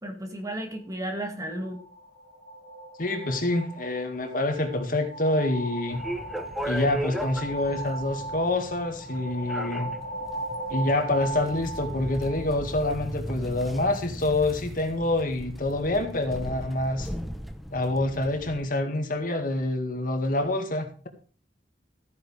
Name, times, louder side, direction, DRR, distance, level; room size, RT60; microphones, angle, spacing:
voice 1, 0.0-1.8, right 1 dB, 20° right, 4 dB, 2.2 m, -33 dB
sound 1, 1.1-12.8, right 1 dB, 35° left, 5.5 m, -38 dB
voice 2, 3.0-6.0 6.6-9.9 10.7-17.1 17.7-21.1, left 2 dB, 50° left, 5 dB, 2.1 m, -27 dB
sound 2, 5.9-18.6, equal, ahead, 1.1 m, -37 dB
14.5 x 9.7 x 3.5 m, 0.38 s
head